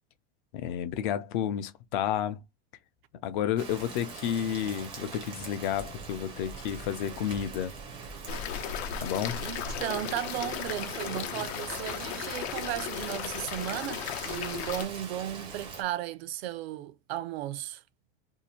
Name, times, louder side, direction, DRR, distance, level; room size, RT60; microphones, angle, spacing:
voice 1, 0.5-2.4 3.2-7.7 9.0-9.4, left 10 dB, 50° left, 0.6 m, -31 dB
Rain, 3.6-15.8, right 4 dB, 15° right, 0.5 m, -43 dB
sound 1, 8.3-14.8, left 9 dB, 90° left, 0.8 m, -36 dB
voice 2, 9.4-17.8, right 13 dB, 70° right, 0.5 m, -35 dB
2.7 x 2.5 x 4.2 m
supercardioid pair, 175°, 32 cm